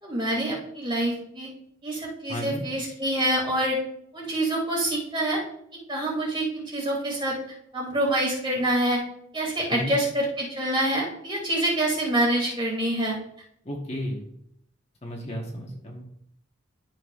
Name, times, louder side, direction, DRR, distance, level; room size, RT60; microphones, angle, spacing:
voice 1, 0.0-1.5 1.8-3.8 4.1-5.4 5.9-7.4 7.7-9.0 9.3-13.2, right 1 dB, 25° right, -3 dB, 2.7 m, -26 dB
voice 2, 2.3-2.6 9.7-9.9 13.6-14.2 15.0-16.0, equal, 30° left, -1 dB, 1.2 m, -33 dB
12.5 x 6.0 x 2.5 m, 0.72 s
head